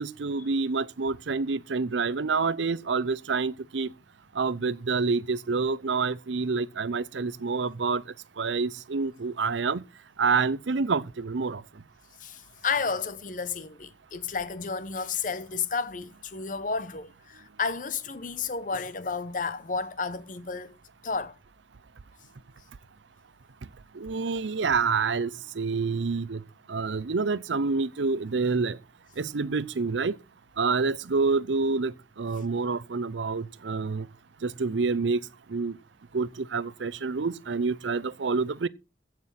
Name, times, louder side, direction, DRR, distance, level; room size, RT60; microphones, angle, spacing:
voice 1, 0.0-3.9 4.4-8.0 8.4-9.8 10.2-11.6 23.9-26.4 26.7-28.8 29.2-30.2 30.6-34.1 34.4-35.2 35.5-35.8 36.1-38.7, right 4 dB, 90° right, 0.6 m, -27 dB
voice 2, 12.2-20.8 21.0-21.3, left 5 dB, 45° left, 0.9 m, -32 dB
15.0 x 6.0 x 5.8 m
head